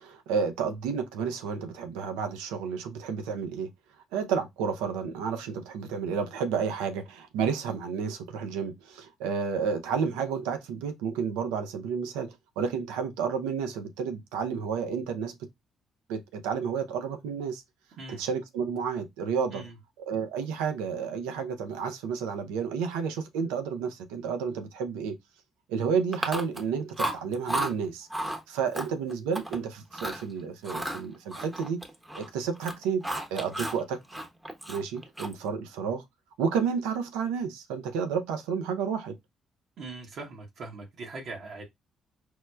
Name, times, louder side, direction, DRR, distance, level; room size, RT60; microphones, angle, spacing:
voice 1, 0.0-3.7 4.1-15.3 16.1-17.6 18.1-19.6 20.0-25.2 25.7-28.1 28.5-31.8 32.2-33.0 33.3-34.0 34.7-36.0 36.4-39.2, right 6 dB, 90° right, 0.5 m, -31 dB
Chewing mastication, 26.1-26.7 27.0-27.7 28.1-28.4 28.7-29.6 29.9-30.2 30.6-32.3 32.5-33.8 34.1-35.5, right 1 dB, 10° right, 0.8 m, -33 dB
voice 2, 39.8-41.6, right 3 dB, 65° right, 0.9 m, -41 dB
4.5 x 2.0 x 2.2 m
supercardioid pair, 60°, 0 cm